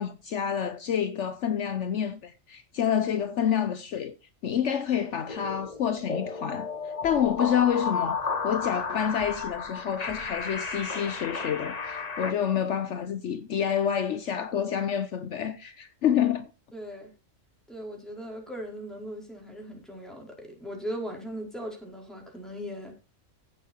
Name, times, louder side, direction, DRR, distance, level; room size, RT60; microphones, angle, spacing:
voice 1, 0.0-4.1 4.4-6.7 7.0-16.5, left 9 dB, 65° left, 1.1 m, -28 dB
sound 1, 5.3-12.3, left 4 dB, 35° left, 1.2 m, -33 dB
voice 2, 16.7-17.1 17.7-23.0, equal, ahead, 5.1 m, -38 dB
16.0 x 7.6 x 4.5 m
omnidirectional pair, 1.3 m